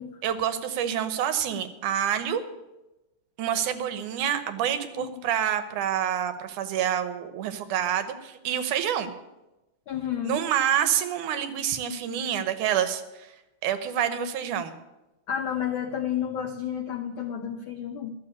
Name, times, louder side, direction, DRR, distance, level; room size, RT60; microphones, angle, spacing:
voice 1, 0.2-2.4 3.4-9.1 10.2-13.3 13.6-14.8, right 9 dB, 75° right, 11 dB, 2.5 m, -27 dB
voice 2, 9.9-10.4 15.3-18.2, left 9 dB, 90° left, 5 dB, 1.1 m, -31 dB
13.0 x 7.5 x 9.4 m, 0.98 s
omnidirectional pair, 3.6 m